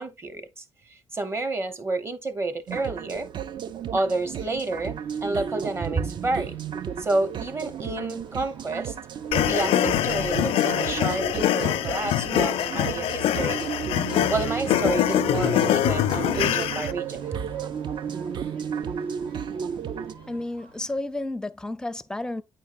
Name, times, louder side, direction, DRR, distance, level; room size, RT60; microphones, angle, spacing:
voice 1, 0.0-3.3 3.9-6.6 7.0-8.9 9.3-13.6 14.3-17.4, right 2 dB, 25° right, 1.0 m, -30 dB
sound 1, 2.7-20.1, right 7 dB, 55° right, 0.5 m, -33 dB
sound 2, 4.8-21.0, right 7 dB, 70° right, 1.4 m, -43 dB
sound 3, 9.3-16.9, left 12 dB, 90° left, 0.5 m, -24 dB
voice 2, 20.3-22.4, left 2 dB, 5° left, 0.5 m, -31 dB
8.9 x 4.4 x 2.5 m
cardioid pair, 120°, 9 cm